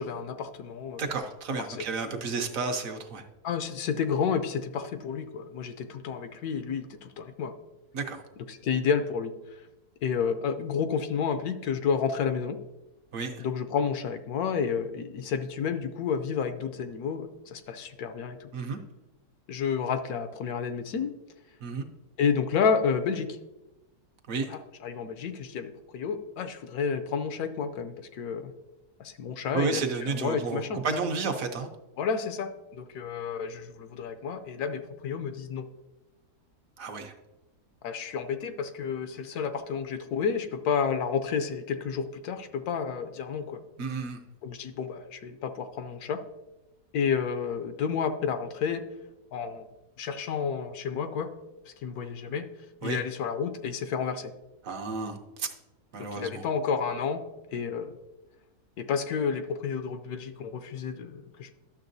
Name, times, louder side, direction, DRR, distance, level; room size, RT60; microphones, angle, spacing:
voice 1, 0.0-1.1 1.5-1.6 3.4-7.5 8.5-9.3 10.0-12.6 13.4-18.5 19.5-21.1 22.2-23.4 24.5-28.5 29.0-30.9 32.0-35.7 37.8-43.6 44.4-46.2 46.9-48.8 49.3-49.7 50.0-51.3 51.7-52.5 52.8-54.3 56.0-57.2 57.5-57.9 58.8-61.5, left 6 dB, 75° left, 9 dB, 1.1 m, -30 dB
voice 2, 1.0-3.2 7.9-8.2 13.1-13.4 18.5-18.8 21.6-21.8 24.3-24.5 29.5-31.7 36.8-37.1 43.8-44.2 52.8-53.0 54.6-55.5 55.9-56.4, right 4 dB, 65° right, 4 dB, 1.1 m, -31 dB
11.5 x 6.6 x 2.6 m, 1.0 s
omnidirectional pair, 1.7 m